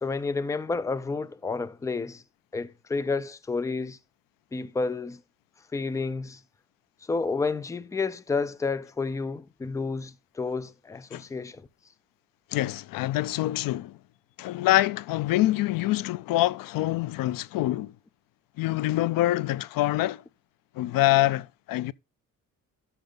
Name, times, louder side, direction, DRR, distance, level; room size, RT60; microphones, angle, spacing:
voice 1, 0.0-2.2 2.5-4.0 4.5-5.2 5.7-6.4 7.0-11.7, left 4 dB, 10° left, 0.4 m, -30 dB
voice 2, 12.5-14.0 14.4-17.9 18.6-20.2 20.7-21.9, left 16 dB, 85° left, 0.5 m, -25 dB
12.5 x 5.9 x 3.8 m
cardioid pair, 155°, 33 cm